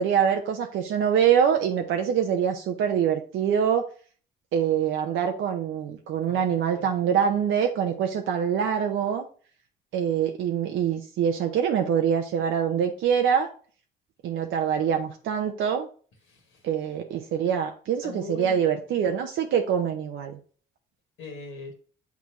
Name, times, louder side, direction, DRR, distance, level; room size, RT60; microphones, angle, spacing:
voice 1, 0.0-3.8 4.5-9.2 9.9-13.5 14.2-15.9 16.6-20.4, right 8 dB, 80° right, 3 dB, 0.7 m, -24 dB
voice 2, 6.3-6.9 16.3-16.6 17.3-17.5 18.0-18.6 21.2-21.7, left 4 dB, 80° left, 3 dB, 1.8 m, -41 dB
8.3 x 4.0 x 3.0 m, 0.42 s
cardioid pair, 90°, 20 cm